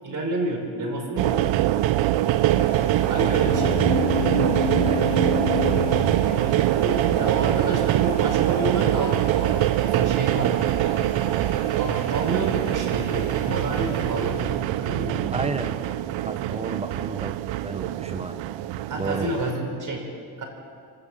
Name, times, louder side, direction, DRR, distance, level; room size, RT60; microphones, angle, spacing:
voice 1, 0.0-1.9 3.1-3.9 6.6-10.6 11.7-15.3 18.9-20.1 20.4-20.5, right 2 dB, 40° right, 1 dB, 4.8 m, -29 dB
sound 1, 1.2-19.5, right 13 dB, 75° right, 0.7 m, -23 dB
sound 2, 2.1-14.7, left 4 dB, 65° left, 3.6 m, -41 dB
sound 3, 3.4-7.1, left 12 dB, 45° left, 0.5 m, -29 dB
voice 2, 4.8-5.9 15.3-15.8 16.2-17.3 17.6-18.3 19.0-19.3, right 3 dB, 15° right, 8 dB, 1.3 m, -33 dB
25.5 x 12.5 x 8.5 m, 2.4 s
cardioid pair, 135°, 46 cm